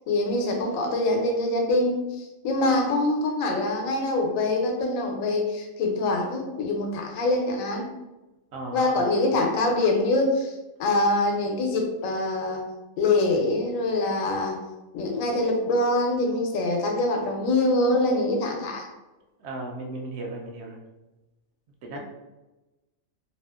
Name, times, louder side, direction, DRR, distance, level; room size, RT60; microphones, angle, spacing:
voice 1, 0.1-7.8 8.7-10.5 10.8-12.6 13.0-14.6 14.9-18.9, left 2 dB, 80° left, 2 dB, 1.0 m, -24 dB
voice 2, 8.5-9.1 19.4-20.8 21.8-22.0, right 2 dB, 65° right, 0 dB, 0.7 m, -36 dB
2.7 x 2.4 x 2.3 m, 1.1 s
omnidirectional pair, 1.4 m